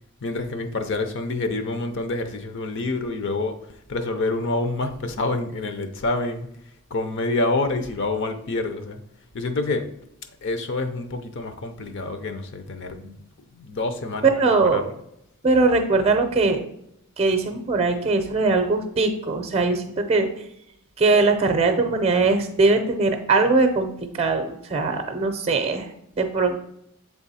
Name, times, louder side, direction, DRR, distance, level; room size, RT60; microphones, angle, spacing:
voice 1, 0.2-6.5 6.9-9.0 9.3-9.9 10.4-13.2 13.5-15.0, left 2 dB, 55° left, 0.6 m, -27 dB
voice 2, 14.2-14.8 15.4-16.6 17.2-20.3 21.0-25.9 26.2-26.5, right 3 dB, 30° right, 0.6 m, -21 dB
7.8 x 3.6 x 4.1 m
head